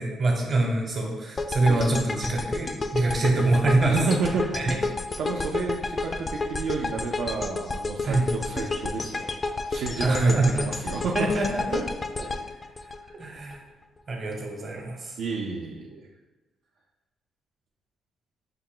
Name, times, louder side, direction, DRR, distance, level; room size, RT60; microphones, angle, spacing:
voice 1, 0.0-4.0 4.5-4.8 8.0-8.3 10.0-10.6 11.1-11.8 12.2-12.3 13.1-13.6 14.1-15.2, right 2 dB, 45° right, 0 dB, 1.0 m, -25 dB
sound 1, 1.4-13.6, left 3 dB, 30° left, 0.3 m, -31 dB
voice 2, 3.8-4.7 5.2-9.3 9.7-11.3 11.7-11.8 13.0-13.1 15.2-16.1, right 4 dB, 75° right, -1 dB, 0.4 m, -30 dB
5.6 x 2.2 x 3.7 m, 1.2 s
cardioid pair, 90°, 0 cm